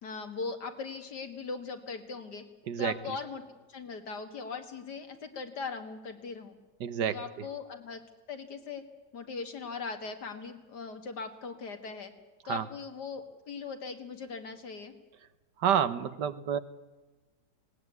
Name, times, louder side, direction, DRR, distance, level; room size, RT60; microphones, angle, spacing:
voice 1, 0.0-2.4 2.8-3.4 3.7-6.6 7.1-8.0 8.3-8.8 9.1-12.1 12.4-14.9, left 5 dB, 65° left, 6 dB, 2.4 m, -39 dB
voice 2, 6.8-7.2 12.5-12.6 15.6-16.6, right 8 dB, 70° right, 13 dB, 1.5 m, -28 dB
19.5 x 18.5 x 9.4 m, 1.2 s
omnidirectional pair, 1.9 m